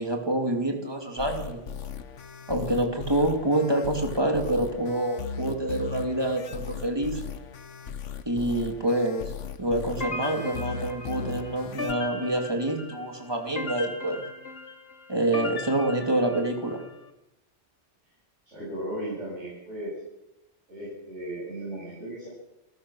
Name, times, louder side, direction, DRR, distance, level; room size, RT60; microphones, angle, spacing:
voice 1, 0.0-1.6 2.5-7.2 8.3-9.3 9.6-14.2 15.1-16.8, right 1 dB, 20° right, 4 dB, 2.7 m, -27 dB
sound 1, 1.2-11.9, left 6 dB, 85° left, 1.4 m, -38 dB
sound 2, 10.0-16.9, left 3 dB, 55° left, 1.9 m, -37 dB
voice 2, 18.5-19.9 20.7-22.3, right 1 dB, 80° right, -7 dB, 7.9 m, -36 dB
29.0 x 14.0 x 6.4 m, 0.93 s
omnidirectional pair, 1.2 m